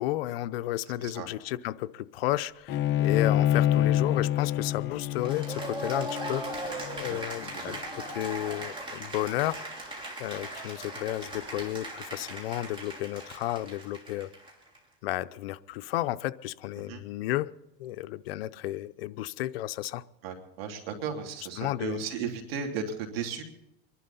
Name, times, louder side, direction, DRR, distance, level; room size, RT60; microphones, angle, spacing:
voice 1, 0.0-6.7 7.0-9.6 10.2-14.3 15.0-17.5 17.8-20.0 21.6-22.0, left 15 dB, 85° left, 14 dB, 0.7 m, -32 dB
Bowed string instrument, 2.7-8.0, left 11 dB, 40° left, 1.0 m, -27 dB
Cheering / Applause, 5.2-14.8, right 2 dB, 15° right, 3.3 m, -39 dB
voice 2, 20.2-23.4, right 6 dB, 85° right, 3 dB, 3.0 m, -35 dB
25.0 x 11.5 x 4.1 m, 0.89 s
supercardioid pair, 140°, 29 cm